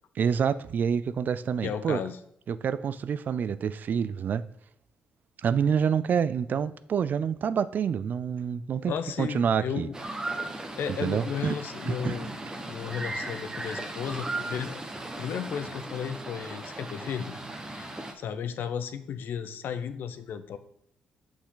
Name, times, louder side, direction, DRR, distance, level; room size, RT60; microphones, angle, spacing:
voice 1, 0.2-2.0 2.5-4.4 5.4-8.9 9.2-9.9 11.0-11.5 11.9-12.2, right 7 dB, 55° right, 0.4 m, -27 dB
voice 2, 1.6-2.2 8.9-10.0 10.8-12.3 12.7-14.8 15.2-17.4 17.7-20.6, left 7 dB, 70° left, 0.6 m, -34 dB
sound 1, 9.9-18.1, right 2 dB, 20° right, 1.1 m, -37 dB
6.4 x 5.9 x 3.8 m
cardioid pair, 70°, 4 cm